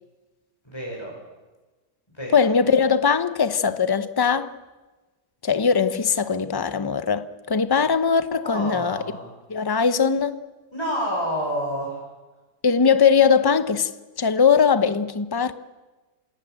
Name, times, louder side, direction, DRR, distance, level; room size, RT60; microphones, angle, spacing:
voice 1, 0.6-1.1 2.1-2.4 8.4-9.3 10.7-12.0, equal, 15° left, 5.5 m, -28 dB
voice 2, 2.3-4.5 5.4-9.0 9.5-10.4 12.6-13.9 14.2-15.5, left 6 dB, 40° left, 0.3 m, -20 dB
27.5 x 18.0 x 9.0 m
omnidirectional pair, 1.8 m